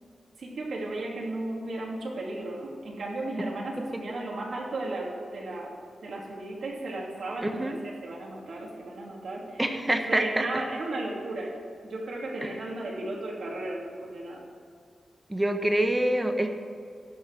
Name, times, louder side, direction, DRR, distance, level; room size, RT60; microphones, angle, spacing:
voice 1, 0.4-5.7 6.0-11.5 11.8-14.4, right 2 dB, 70° right, -3 dB, 2.7 m, -35 dB
voice 2, 7.4-7.8 9.6-10.4 12.4-12.5 15.3-16.5, right 1 dB, 15° right, 5 dB, 1.0 m, -26 dB
12.5 x 5.6 x 8.0 m, 2.2 s
wide cardioid pair, 135°, 0 cm